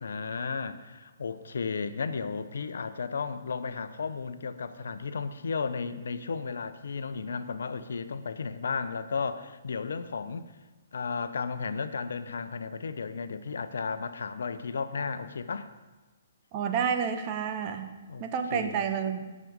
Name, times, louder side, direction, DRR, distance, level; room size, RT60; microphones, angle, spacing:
voice 1, 0.0-10.5 10.9-15.7 18.1-18.3 18.5-18.9, left 5 dB, 70° left, 11 dB, 0.8 m, -34 dB
voice 2, 16.5-17.9 18.2-19.2, right 7 dB, 35° right, 6 dB, 1.3 m, -29 dB
17.0 x 6.3 x 5.3 m, 1.2 s
hypercardioid pair, 130°, 0 cm